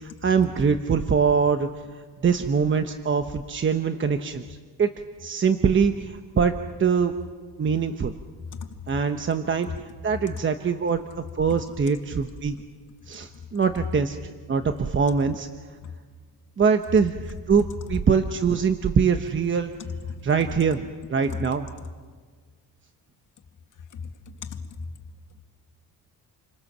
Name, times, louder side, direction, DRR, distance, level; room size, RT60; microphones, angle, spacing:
voice 1, 0.0-4.4 4.8-4.9 5.2-7.1 7.6-8.1 8.9-9.7 10.0-11.0 11.4-12.6 13.1-15.5 16.6-19.7 20.2-21.7, right 6 dB, 35° right, 1.1 m, -23 dB
voice 2, 19.8-20.2 23.9-24.9, left 5 dB, 60° left, 2.2 m, -36 dB
30.0 x 25.0 x 7.4 m
cardioid pair, 135°, 35 cm